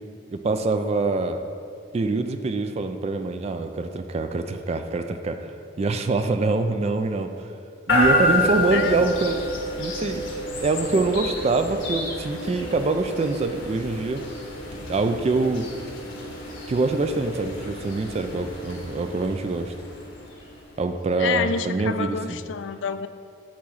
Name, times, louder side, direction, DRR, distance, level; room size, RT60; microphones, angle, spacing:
voice 1, 0.3-1.4 1.9-7.6 7.9-9.4 9.8-14.3 14.9-15.7 16.7-19.7 20.8-22.4, right 3 dB, 30° right, 8 dB, 0.3 m, -25 dB
sound 1, 7.9-20.9, left 1 dB, 80° left, 1.4 m, -29 dB
voice 2, 21.2-23.1, left 6 dB, 65° left, 11 dB, 0.3 m, -28 dB
8.3 x 3.1 x 6.2 m, 2.3 s
head